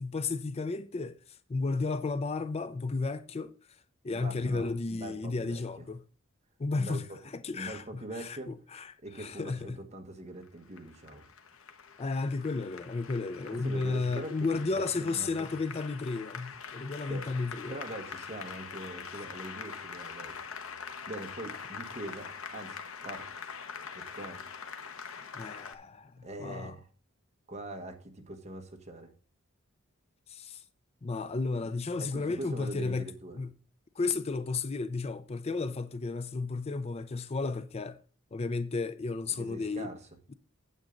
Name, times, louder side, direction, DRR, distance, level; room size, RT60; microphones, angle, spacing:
voice 1, 0.0-3.5 4.0-6.0 6.6-7.1 7.3-9.8 12.0-17.8 25.3-26.8 30.3-30.6 31.0-33.5 34.0-38.0 38.3-39.9, left 3 dB, 30° left, 0.4 m, -33 dB
voice 2, 4.1-5.8 6.8-7.2 7.5-8.5 9.0-11.3 13.5-15.5 17.1-17.3 17.7-20.4 21.1-23.4 23.9-24.4 26.2-26.9 27.5-29.1 32.0-33.4 39.3-40.0, right 1 dB, 35° right, 1.4 m, -43 dB
Applause, 10.4-25.7, left 6 dB, 90° left, 1.0 m, -44 dB
9.0 x 8.3 x 3.9 m
head